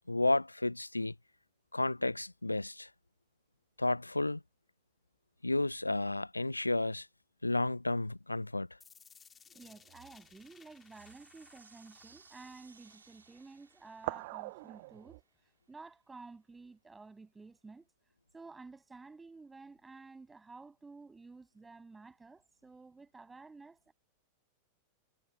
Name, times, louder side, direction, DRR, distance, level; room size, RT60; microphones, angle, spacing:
voice 1, 0.1-1.1 1.7-2.9 3.8-4.4 5.4-7.1 7.4-8.7, left 2 dB, 85° left, 0.6 m, -32 dB
sound 1, 8.8-14.8, left 6 dB, 20° left, 3.0 m, -62 dB
voice 2, 9.5-17.9 18.3-23.9, right 3 dB, 10° right, 6.6 m, -53 dB
sound 2, 9.5-10.3 10.9-11.2 12.0-12.2 13.9-15.2, right 24 dB, 50° right, 1.8 m, -44 dB
sound 3, 9.6-15.5, right 5 dB, 75° right, 5.5 m, -63 dB
figure-of-eight pair, 90°, 0 cm